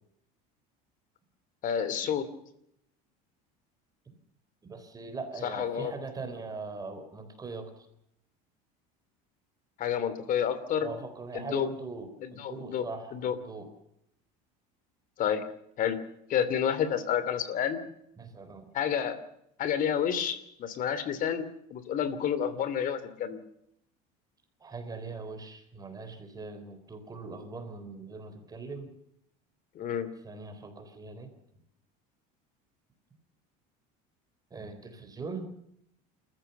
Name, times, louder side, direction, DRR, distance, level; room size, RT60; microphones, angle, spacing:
voice 1, 1.6-2.3 5.4-5.9 9.8-10.9 11.3-11.7 12.2-12.8 13.1-13.3 15.2-15.4 15.8-16.0 16.3-17.8 18.7-19.2 19.6-23.4 29.7-30.1, left 8 dB, 45° left, 14 dB, 2.7 m, -29 dB
voice 2, 4.6-7.9 10.8-13.7 18.2-18.7 24.6-28.9 30.2-31.3 34.5-35.5, right 3 dB, 20° right, 8 dB, 3.9 m, -41 dB
28.0 x 14.5 x 6.8 m, 0.77 s
cardioid pair, 130°, 19 cm